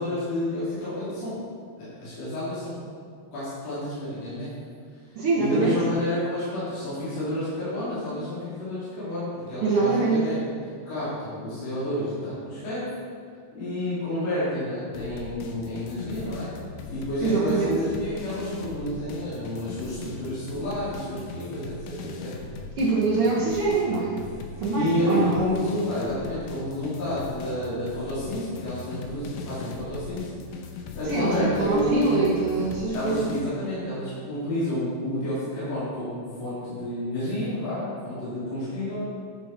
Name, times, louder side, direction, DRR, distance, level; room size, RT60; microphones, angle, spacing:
voice 1, 0.0-1.4 1.8-2.8 3.3-4.5 5.4-10.4 10.9-12.9 13.5-16.5 16.9-22.3 24.7-30.3 30.9-32.2 32.9-39.1, left 1 dB, 50° left, -11 dB, 3.9 m, -30 dB
voice 2, 5.1-5.8 9.6-10.2 17.2-17.7 22.8-24.2 24.6-25.4 31.0-33.3, right 4 dB, 70° right, -5 dB, 1.3 m, -24 dB
sound 1, 14.9-33.4, left 4 dB, 80° left, 2.4 m, -39 dB
10.5 x 6.7 x 4.4 m, 2.1 s
omnidirectional pair, 4.0 m